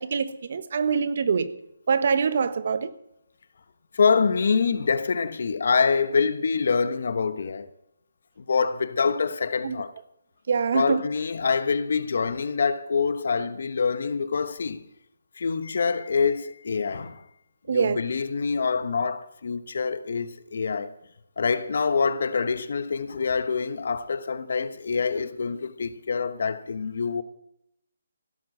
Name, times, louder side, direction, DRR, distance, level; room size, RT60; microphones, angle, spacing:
voice 1, 0.0-1.5 1.9-2.9 9.6-9.8 10.5-11.0 17.7-18.0, right 5 dB, 50° right, 1.3 m, -24 dB
voice 2, 3.9-7.7 8.4-9.9 10.7-14.8 15.4-17.2 17.7-20.9 21.4-27.2, left 5 dB, 60° left, 1.1 m, -25 dB
17.0 x 7.4 x 7.8 m
hypercardioid pair, 165°, 0 cm